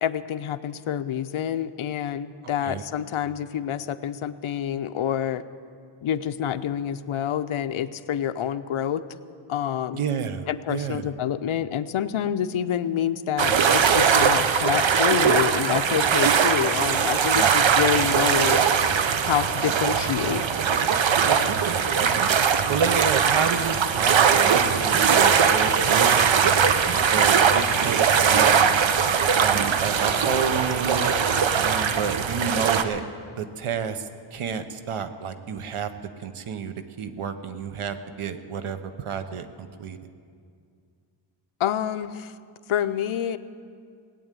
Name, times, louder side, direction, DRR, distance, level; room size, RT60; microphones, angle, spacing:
voice 1, 0.0-5.4 6.0-9.0 9.5-10.0 10.5-18.8 19.2-20.4 41.6-42.3 42.7-43.4, left 9 dB, 75° left, 9 dB, 0.7 m, -27 dB
voice 2, 9.9-11.1 17.3-17.6 21.2-22.3 22.7-26.7 27.1-28.8 29.4-31.1 31.6-33.0 33.4-35.9 36.2-40.0, right 6 dB, 90° right, 10 dB, 1.0 m, -30 dB
sound 1, 13.4-32.8, right 6 dB, 65° right, 0.9 m, -21 dB
18.0 x 8.8 x 9.0 m, 2.3 s
wide cardioid pair, 145°, 49 cm